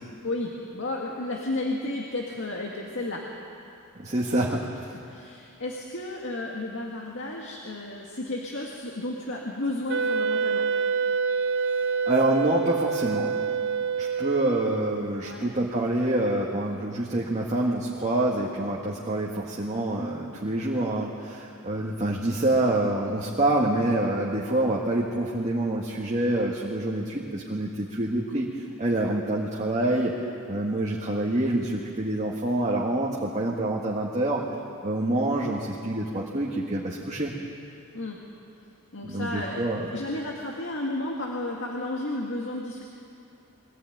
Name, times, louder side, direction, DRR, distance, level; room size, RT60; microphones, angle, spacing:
voice 1, 0.2-3.2 5.1-10.7 15.2-15.5 37.9-38.2 38.9-42.9, left 2 dB, 60° left, -1 dB, 1.9 m, -32 dB
voice 2, 4.0-4.7 12.1-13.4 14.0-28.5 28.8-30.2 30.5-34.4 34.8-37.3 39.0-39.9, right 1 dB, 30° right, -3 dB, 1.8 m, -26 dB
Wind instrument woodwind instrument, 9.9-15.1, right 5 dB, 55° right, 0.6 m, -27 dB
22.0 x 16.0 x 9.3 m, 2.6 s
head